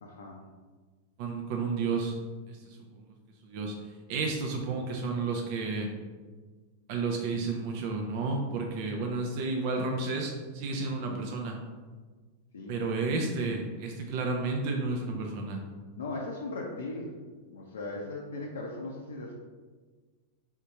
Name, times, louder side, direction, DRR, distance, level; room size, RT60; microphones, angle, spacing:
voice 1, 0.0-0.4 11.2-11.4 12.5-12.8 16.0-17.1 17.5-19.3, left 2 dB, 65° left, -2 dB, 0.5 m, -38 dB
voice 2, 1.2-2.1 2.5-2.8 3.4-3.7 4.1-5.9 6.9-11.6 12.7-15.6, right 3 dB, 45° right, 1 dB, 0.5 m, -31 dB
3.6 x 2.7 x 4.3 m, 1.4 s
figure-of-eight pair, 90°, 0 cm